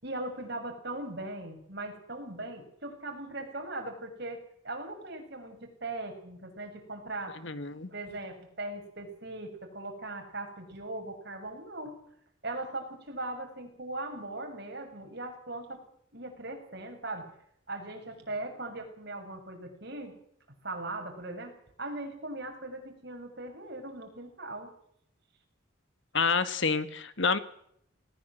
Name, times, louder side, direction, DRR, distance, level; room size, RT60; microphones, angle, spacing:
voice 1, 0.0-7.4 7.9-12.0 12.4-15.8 16.1-17.3 17.7-20.2 20.6-24.7, right 2 dB, 50° right, 3 dB, 6.9 m, -39 dB
voice 2, 7.4-7.9 26.1-27.4, left 5 dB, 60° left, 12 dB, 1.7 m, -28 dB
20.0 x 20.0 x 7.7 m, 0.68 s
head